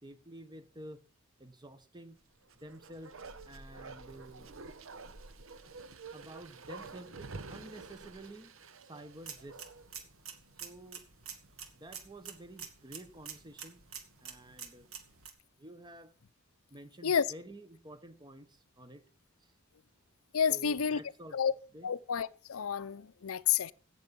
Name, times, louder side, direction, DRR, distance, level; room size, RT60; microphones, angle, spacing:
voice 1, 0.0-1.0 1.4-2.2 2.6-3.1 3.4-4.5 5.7-5.8 6.1-8.5 8.8-9.6 10.6-11.0 11.7-13.8 14.2-14.9 15.6-16.1 16.7-19.1 19.4-19.5 20.5-21.4 21.7-21.9, right 1 dB, 20° right, 1.1 m, -50 dB
Bark, 2.4-10.0 10.3-10.4, right 3 dB, 65° right, 1.1 m, -49 dB
sound 1, 9.1-15.3, right 7 dB, 80° right, 2.3 m, -48 dB
voice 2, 20.3-21.0 21.3-21.5 21.8-23.7, left 7 dB, 80° left, 0.6 m, -30 dB
16.5 x 7.0 x 5.3 m
head